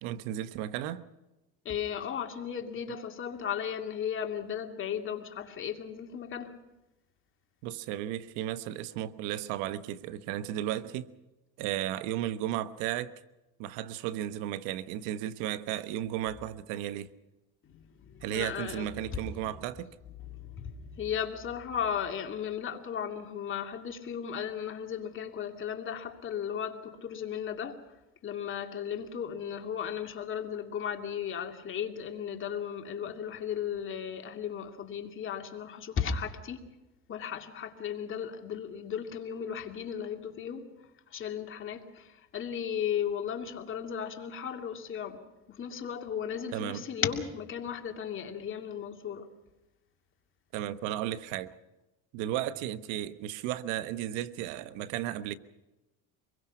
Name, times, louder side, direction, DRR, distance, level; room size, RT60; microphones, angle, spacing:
voice 1, 0.0-1.0 7.6-11.1 11.6-13.1 13.6-17.1 18.2-19.9 46.5-46.8 50.5-51.5 52.1-55.4, right 12 dB, 85° right, 1.1 m, -34 dB
voice 2, 1.6-6.6 17.6-19.6 20.2-27.8 28.2-36.7 37.1-40.7 41.1-49.3, left 8 dB, 40° left, 2.6 m, -35 dB
24.5 x 22.0 x 6.0 m
cardioid pair, 110°, 30 cm